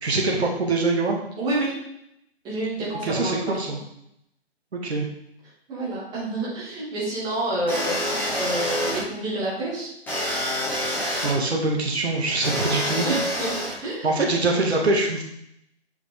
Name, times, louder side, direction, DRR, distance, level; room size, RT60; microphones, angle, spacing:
voice 1, 0.0-1.2 3.0-3.8 4.7-5.1 10.7-10.8 11.2-13.1 14.0-15.2, right 2 dB, 70° right, -1 dB, 1.9 m, -24 dB
voice 2, 1.4-1.7 2.4-3.6 5.7-9.9 13.0-13.5 13.8-14.1, right 2 dB, 10° right, -7 dB, 2.2 m, -28 dB
sound 1, 7.7-9.0 10.1-11.3 12.4-13.7, equal, 5° left, 2.2 m, -27 dB
7.8 x 6.0 x 3.7 m, 0.76 s
figure-of-eight pair, 145°, 34 cm